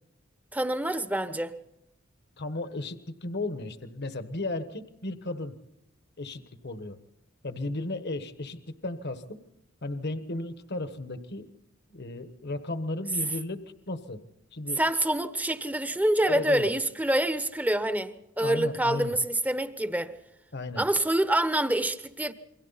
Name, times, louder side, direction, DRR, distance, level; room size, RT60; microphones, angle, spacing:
voice 1, 0.5-1.5 14.8-20.1 20.8-22.3, right 1 dB, 10° right, 1.1 m, -26 dB
voice 2, 2.4-5.6 6.2-7.0 7.4-9.4 9.8-11.5 11.9-14.2 14.5-14.8 16.3-16.7 18.4-19.2 20.5-20.8, left 2 dB, 55° left, 1.4 m, -35 dB
28.5 x 23.0 x 4.1 m
head